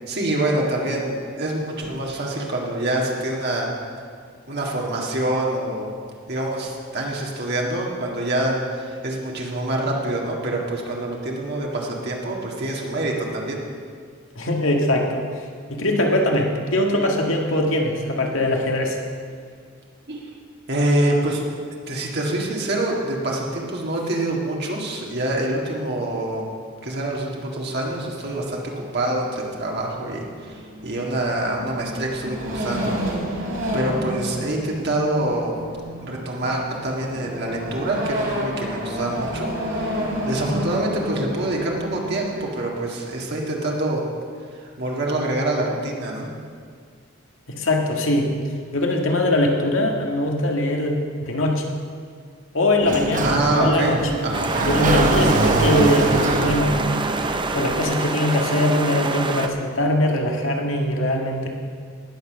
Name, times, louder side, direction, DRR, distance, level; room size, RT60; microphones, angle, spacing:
voice 1, 0.1-3.7 4.5-5.9 6.3-13.6 20.1-20.2 20.7-21.4 21.9-26.4 26.8-28.6 28.9-33.0 33.3-35.6 36.0-39.5 39.8-44.0 44.6-46.3 53.2-54.0 54.2-54.5, right 1 dB, 55° right, -2 dB, 1.9 m, -25 dB
voice 2, 14.4-15.2 15.7-19.0 47.5-48.3 48.7-51.7 52.5-54.0 54.6-56.8 57.5-61.5, left 1 dB, 75° left, 1 dB, 1.8 m, -21 dB
sound 1, 28.9-29.0 29.2-29.3 29.6-42.5, equal, 80° right, 3.5 m, -30 dB
Sliding door, 52.8-57.8, right 2 dB, 40° right, 1.0 m, -23 dB
sound 2, 54.3-59.5, right 3 dB, 25° right, 0.7 m, -26 dB
18.5 x 6.7 x 6.4 m, 2.1 s
head